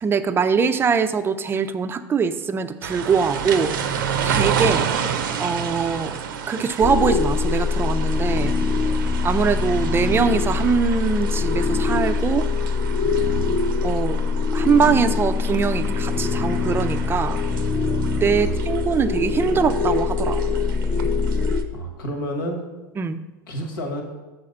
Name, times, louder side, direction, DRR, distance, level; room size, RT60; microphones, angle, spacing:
voice 1, 0.0-4.9 5.4-6.2 6.5-8.6 9.2-12.5 13.8-14.2 14.5-17.4 18.2-20.4 23.0-23.2, right 6 dB, 20° right, 11 dB, 0.4 m, -22 dB
sound 1, 2.8-21.6, right 7 dB, 70° right, 0.6 m, -31 dB
sound 2, 6.8-21.6, left 4 dB, 25° left, 0.6 m, -23 dB
voice 2, 13.1-13.6 18.3-18.5 21.7-22.6 23.5-24.0, right 1 dB, 75° left, 3 dB, 1.3 m, -30 dB
6.5 x 4.1 x 5.3 m, 1.2 s
hypercardioid pair, 85°, 11 cm